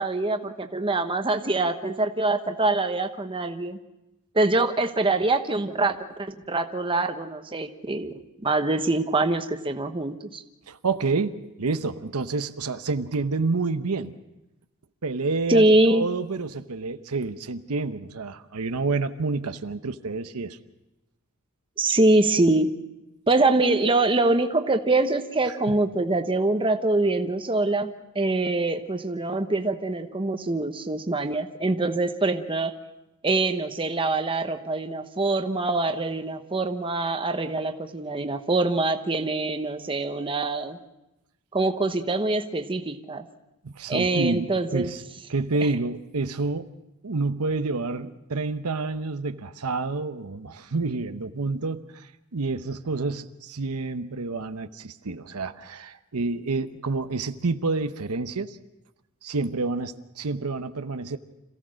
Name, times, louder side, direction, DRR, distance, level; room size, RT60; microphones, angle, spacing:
voice 1, 0.0-3.8 4.3-8.1 8.4-10.4 15.5-16.1 21.8-22.7 23.3-32.7 33.2-40.8 41.5-43.2 43.9-44.9, right 2 dB, 25° right, 7 dB, 1.0 m, -24 dB
voice 2, 10.7-14.1 15.0-20.6 25.5-25.6 43.6-45.0 45.3-46.7 47.0-58.6 59.2-61.2, right 3 dB, 90° right, 9 dB, 0.9 m, -29 dB
27.0 x 16.0 x 6.3 m, 0.95 s
head